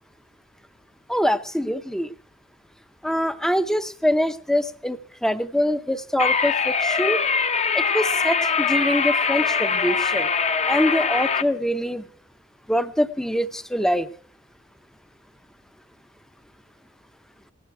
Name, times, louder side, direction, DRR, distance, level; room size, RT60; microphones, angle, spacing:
voice 1, 1.1-2.1 3.0-7.2 7.7-10.3 10.7-12.0 12.7-14.1, equal, ahead, 13 dB, 0.6 m, -24 dB
sound 1, 6.2-11.4, left 5 dB, 35° left, 0.8 m, -22 dB
19.0 x 13.5 x 4.7 m, 0.44 s
head